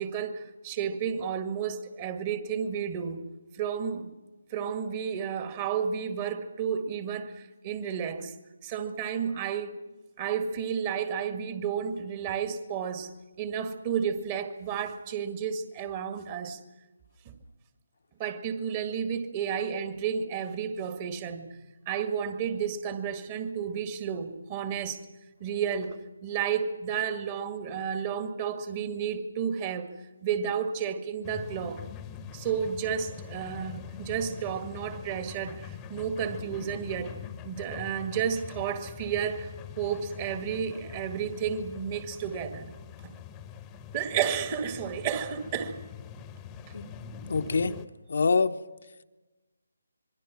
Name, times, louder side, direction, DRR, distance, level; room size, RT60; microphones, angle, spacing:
voice 1, 0.0-3.2 3.5-4.1 4.5-8.3 8.6-9.7 10.2-13.1 13.4-16.6 17.3-17.4 18.2-21.5 21.9-25.0 25.4-29.9 30.2-31.8 32.3-37.1 37.4-42.7 43.0-43.1 43.9-45.8, right 7 dB, 25° right, 7 dB, 1.9 m, -32 dB
sound 1, 31.2-47.9, left 7 dB, 15° left, 1.1 m, -44 dB
voice 2, 47.2-47.8 48.1-48.6, left 4 dB, 55° left, 7 dB, 1.0 m, -25 dB
26.5 x 23.0 x 6.1 m, 1.1 s
figure-of-eight pair, 150°, 0 cm